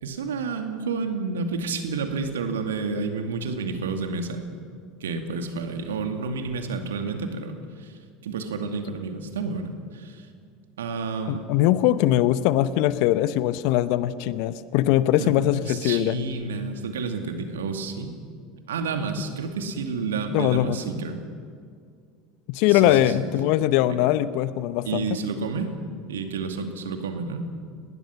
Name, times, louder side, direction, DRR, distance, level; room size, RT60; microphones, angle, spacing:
voice 1, 0.0-4.4 5.0-10.3 10.8-11.4 15.2-18.2 18.7-21.2 22.7-23.3 23.9-24.0 24.9-25.7 26.1-27.5, right 4 dB, 75° right, 6 dB, 2.4 m, -30 dB
voice 2, 11.3-16.2 20.3-20.8 22.5-25.2, left 13 dB, 60° left, 14 dB, 1.0 m, -21 dB
29.5 x 20.0 x 5.9 m, 2.2 s
figure-of-eight pair, 80°, 0 cm